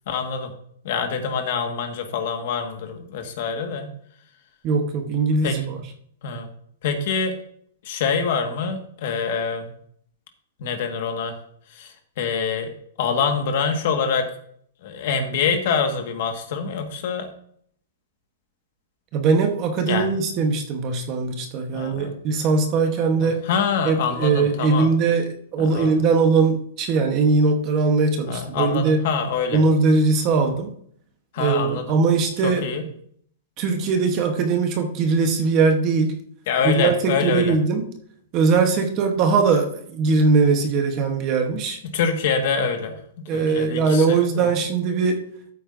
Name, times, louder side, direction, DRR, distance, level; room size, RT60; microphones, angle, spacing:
voice 1, 0.1-0.5 0.8-3.9 5.4-5.6 6.2-6.5 6.8-7.3 7.8-9.7 10.6-11.3 11.7-12.7 13.0-14.3 14.8-17.3 19.9-20.1 21.7-22.1 23.2-24.9 25.6-25.9 28.3-29.6 31.3-31.8 32.4-32.8 36.5-37.5 41.8-44.5, left 5 dB, 40° left, 5 dB, 1.5 m, -25 dB
voice 2, 4.6-5.8 19.1-23.4 23.8-29.1 29.5-30.7 31.4-32.7 33.6-36.2 36.6-37.9 38.3-41.8 43.3-45.2, right 4 dB, 25° right, 5 dB, 1.0 m, -20 dB
13.5 x 8.4 x 2.6 m, 0.63 s
hypercardioid pair, 175°, 0 cm